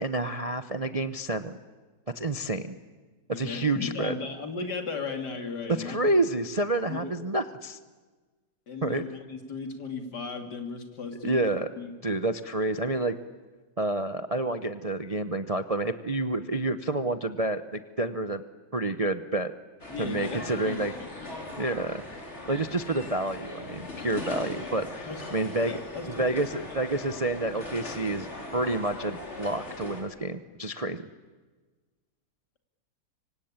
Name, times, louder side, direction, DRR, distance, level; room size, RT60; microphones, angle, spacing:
voice 1, 0.0-1.6 2.1-2.7 3.3-4.1 5.7-7.8 8.8-9.0 11.2-11.7 12.0-13.1 13.8-18.4 18.7-19.5 20.0-20.9 21.5-22.2 22.5-25.8 26.1-31.1, right 2 dB, 35° right, 11 dB, 0.5 m, -29 dB
voice 2, 3.3-6.0 6.9-7.1 8.7-11.4 11.8-11.9 19.9-21.8 25.0-26.2 26.7-26.8, left 4 dB, 60° left, 6 dB, 3.3 m, -36 dB
sound 1, 19.8-30.0, left 2 dB, 35° left, 4.8 m, -40 dB
25.5 x 25.0 x 9.0 m, 1.3 s
omnidirectional pair, 2.1 m